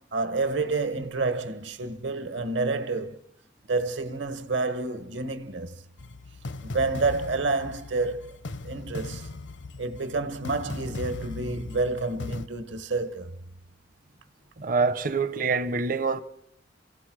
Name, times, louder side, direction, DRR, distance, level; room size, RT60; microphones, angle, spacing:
voice 1, 0.0-3.2 3.7-5.8 6.6-8.4 8.6-9.3 9.8-13.4, right 3 dB, 75° right, 1.4 m, -29 dB
sound 1, 6.0-12.5, left 2 dB, 70° left, 0.7 m, -38 dB
voice 2, 14.6-16.2, right 4 dB, 45° right, 0.7 m, -25 dB
28.0 x 16.5 x 6.2 m
head